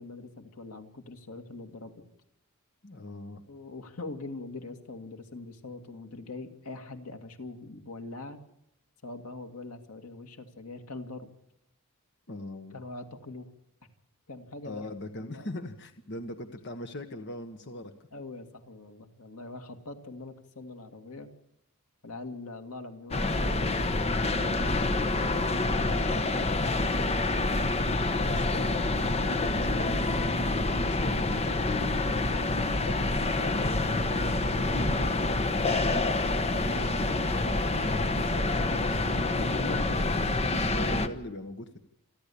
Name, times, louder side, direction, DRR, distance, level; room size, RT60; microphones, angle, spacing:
voice 1, 0.0-1.9 3.5-8.4 9.0-11.3 12.7-13.5 14.3-15.5 18.1-21.3 22.0-26.6, left 2 dB, 85° left, 6 dB, 2.3 m, -43 dB
voice 2, 2.8-3.4 12.3-12.7 14.6-17.9 28.2-30.4 30.7-31.8 32.5-34.1 34.4-35.8 36.5-39.0 39.3-41.8, left 1 dB, 55° left, 6 dB, 1.4 m, -41 dB
sound 1, 23.1-41.1, left 2 dB, 30° left, 1.2 m, -27 dB
28.5 x 11.0 x 8.6 m, 0.84 s
head